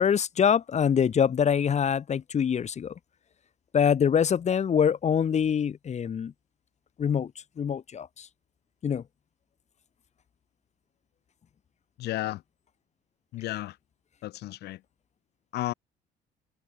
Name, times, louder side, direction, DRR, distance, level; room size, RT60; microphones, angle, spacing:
voice 1, 0.0-2.9 3.7-6.3 7.0-7.3 7.6-8.3 8.8-9.0, left 7 dB, 40° left, 4.0 m, -24 dB
voice 2, 12.0-12.4 13.3-13.8 14.2-14.8 15.5-15.7, left 16 dB, 75° left, 2.6 m, -32 dB
cardioid pair, 110°, 17 cm